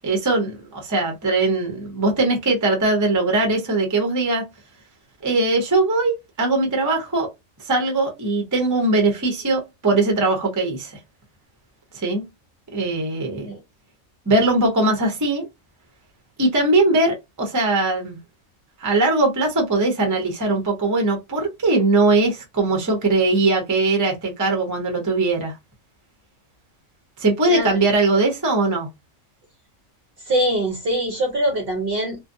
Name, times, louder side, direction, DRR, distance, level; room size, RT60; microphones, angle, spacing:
voice 1, 0.0-4.4 5.2-7.3 7.7-11.0 11.9-12.2 12.7-13.5 14.3-15.5 16.4-18.2 18.8-25.5 27.2-28.9, right 2 dB, 20° right, 0.5 m, -20 dB
voice 2, 27.4-27.9 30.2-32.2, right 1 dB, 55° right, 0.7 m, -23 dB
2.5 x 2.2 x 2.5 m
omnidirectional pair, 1.4 m